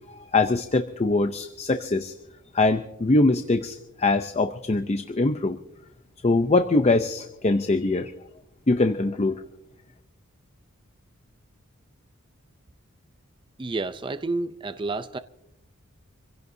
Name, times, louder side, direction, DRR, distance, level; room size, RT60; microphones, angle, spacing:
voice 1, 0.1-2.1 2.5-5.6 6.2-8.1 8.7-9.3, left 2 dB, 30° left, 0.6 m, -23 dB
voice 2, 13.6-15.2, right 3 dB, 25° right, 0.4 m, -30 dB
26.0 x 16.5 x 2.7 m
head